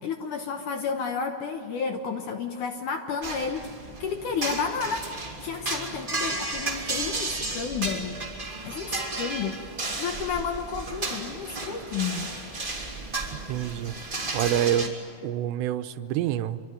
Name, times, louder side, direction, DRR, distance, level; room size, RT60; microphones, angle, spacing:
voice 1, 0.0-3.7 4.0-5.1 5.4-8.2 8.6-9.7 10.0-12.5, left 6 dB, 65° left, 5 dB, 2.1 m, -31 dB
sound 1, 3.2-14.9, right 2 dB, 15° right, 2.4 m, -33 dB
voice 2, 13.3-14.9 15.2-16.6, right 11 dB, 90° right, 10 dB, 3.1 m, -27 dB
26.5 x 24.5 x 9.2 m, 2.1 s
omnidirectional pair, 4.9 m